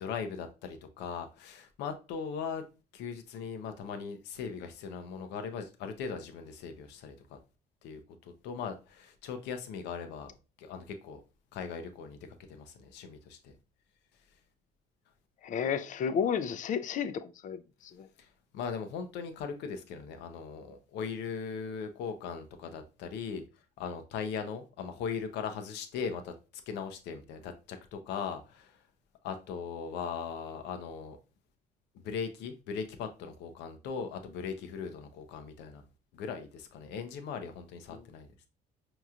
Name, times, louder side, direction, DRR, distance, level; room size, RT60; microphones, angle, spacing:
voice 1, 0.0-2.6 2.9-7.4 7.8-10.3 10.6-11.2 11.5-12.2 12.5-13.5 18.2-23.4 23.8-26.3 26.7-28.8 29.2-31.2 31.9-35.8 36.1-38.3, left 6 dB, 90° left, 0.7 m, -39 dB
voice 2, 15.4-18.1, left 7 dB, 50° left, 0.5 m, -32 dB
5.3 x 3.0 x 2.4 m
cardioid pair, 110°, 17 cm